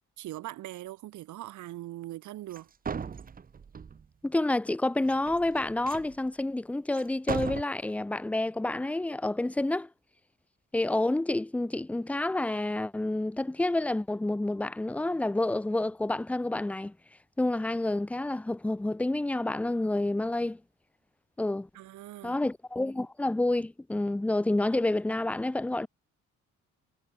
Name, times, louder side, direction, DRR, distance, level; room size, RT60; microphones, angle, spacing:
voice 1, 0.2-2.7 21.7-22.4, right 15 dB, 75° right, 0.9 m, -41 dB
sound 1, 2.5-2.6 2.9-4.1 5.0-6.1 6.9-7.0 7.3-7.6, right 6 dB, 30° right, 0.8 m, -37 dB
voice 2, 4.2-9.9 10.7-16.9 17.4-20.6 21.4-21.7 22.2-25.9, left 2 dB, 5° left, 0.4 m, -29 dB
cardioid pair, 90°, 30 cm